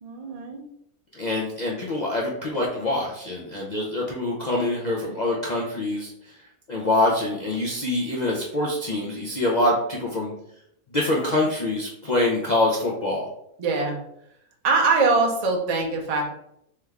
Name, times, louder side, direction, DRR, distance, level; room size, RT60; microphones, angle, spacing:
voice 1, 0.0-0.6 2.5-2.6 13.6-14.0 14.6-16.3, right 3 dB, 45° right, 1 dB, 0.5 m, -23 dB
voice 2, 1.1-6.1 6.7-10.3 10.9-13.3, left 2 dB, 60° left, -3 dB, 0.4 m, -25 dB
3.6 x 3.4 x 3.3 m, 0.75 s
omnidirectional pair, 1.6 m